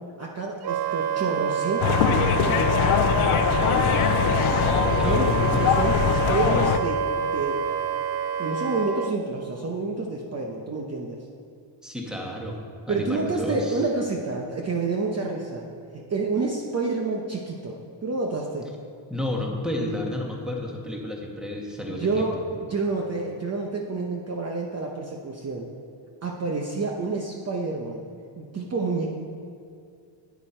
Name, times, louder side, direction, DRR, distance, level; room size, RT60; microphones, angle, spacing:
voice 1, 0.2-2.6 4.9-7.6 8.4-11.2 12.9-15.6 15.9-18.7 21.9-22.4 22.7-25.7 26.2-28.1 28.4-29.1, right 3 dB, 30° right, 0 dB, 0.8 m, -29 dB
Wind instrument woodwind instrument, 0.6-9.1, right 6 dB, 55° right, 0.5 m, -27 dB
sound 1, 1.8-6.8, left 8 dB, 80° left, 0.7 m, -22 dB
voice 2, 3.6-5.9 11.8-12.6 12.9-13.8 19.1-22.4, left 1 dB, ahead, 0 dB, 1.4 m, -32 dB
11.0 x 9.4 x 4.4 m, 2.4 s
cardioid pair, 125°, 48 cm